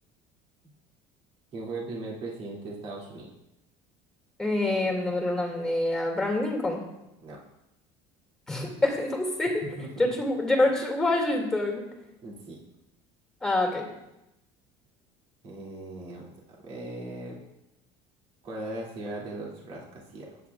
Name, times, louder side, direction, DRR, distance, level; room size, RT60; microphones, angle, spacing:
voice 1, 1.5-3.3 7.2-7.4 9.6-10.1 12.2-12.6 15.4-16.3 16.6-17.4 18.4-20.4, right 2 dB, 45° right, -4 dB, 2.4 m, -38 dB
voice 2, 4.4-6.8 8.5-9.6 10.0-11.8 13.4-13.8, left 2 dB, 5° left, 1 dB, 2.2 m, -26 dB
17.5 x 8.7 x 2.4 m, 0.90 s
cardioid pair, 150°, 14 cm